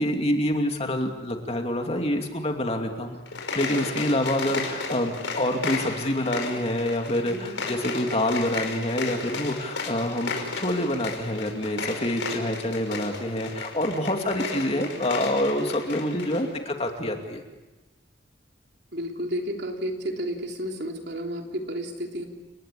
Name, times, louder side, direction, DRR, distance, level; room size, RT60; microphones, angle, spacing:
voice 1, 0.0-3.2 3.5-17.4, left 1 dB, 30° left, 3 dB, 2.6 m, -27 dB
sound 1, 3.2-16.5, left 3 dB, 80° left, 5.4 m, -33 dB
voice 2, 7.2-7.6 18.9-22.3, equal, 60° right, 2 dB, 3.5 m, -32 dB
30.0 x 20.0 x 8.5 m, 1.1 s
head